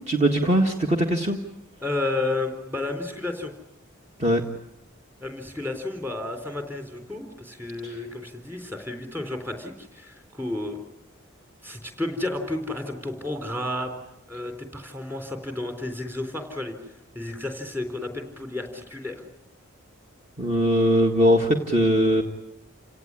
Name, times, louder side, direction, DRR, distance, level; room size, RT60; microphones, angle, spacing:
voice 1, 0.1-1.4 4.2-4.4 7.8-7.9 20.4-22.2, equal, 30° right, 2 dB, 1.7 m, -21 dB
voice 2, 1.8-3.5 5.2-10.8 11.6-14.0 14.3-16.7 17.1-19.2, left 2 dB, 10° right, 6 dB, 3.8 m, -32 dB
29.0 x 18.0 x 9.9 m, 0.86 s
head